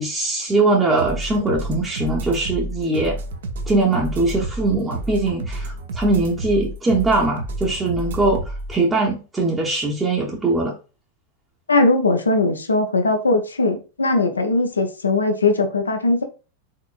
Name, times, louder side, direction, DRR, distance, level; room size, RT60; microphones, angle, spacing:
voice 1, 0.0-3.2 3.7-10.7, right 2 dB, 15° right, 0.8 m, -21 dB
sound 1, 1.0-8.7, right 2 dB, 60° right, 0.7 m, -30 dB
voice 2, 11.7-16.2, left 2 dB, 75° left, 0.7 m, -19 dB
4.6 x 3.6 x 2.5 m
figure-of-eight pair, 90°, 0 cm